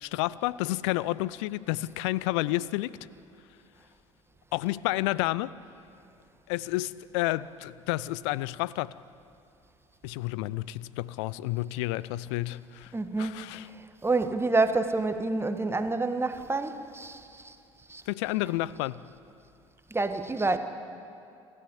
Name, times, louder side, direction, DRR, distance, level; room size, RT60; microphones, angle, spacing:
voice 1, 0.0-3.0 4.5-5.5 6.5-8.9 10.0-12.9 13.2-13.6 18.1-19.0, left 18 dB, 60° left, 0.6 m, -30 dB
voice 2, 12.9-17.6 17.9-18.0 19.9-20.6, right 3 dB, 15° right, 1.7 m, -28 dB
28.0 x 13.5 x 10.0 m
figure-of-eight pair, 60°, 17 cm